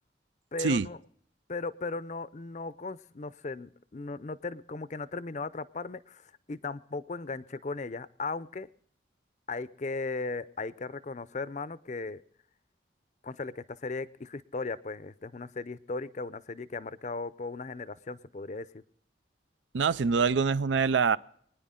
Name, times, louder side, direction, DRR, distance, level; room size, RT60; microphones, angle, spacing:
voice 1, 0.5-1.0 1.5-8.7 9.5-12.2 13.2-18.8, left 3 dB, 40° left, 16 dB, 0.5 m, -37 dB
voice 2, 19.7-21.2, right 5 dB, 85° right, 17 dB, 0.5 m, -25 dB
24.5 x 10.0 x 3.7 m, 0.64 s
head